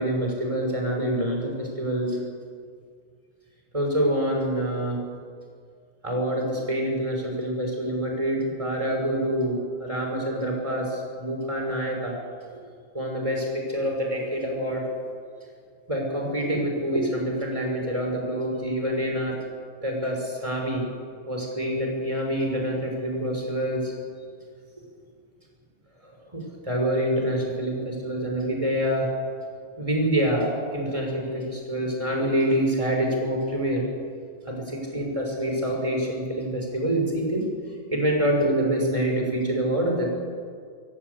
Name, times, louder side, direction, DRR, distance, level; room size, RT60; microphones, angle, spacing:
voice 1, 0.0-2.2 3.7-5.0 6.0-12.2 12.9-14.9 15.9-19.4 19.8-20.8 21.3-23.9 24.8-24.9 26.0-29.1 29.8-33.8 34.5-37.5 37.9-40.1, right 1 dB, 25° right, 0 dB, 5.8 m, -26 dB
24.5 x 17.5 x 8.4 m, 2.1 s
omnidirectional pair, 1.4 m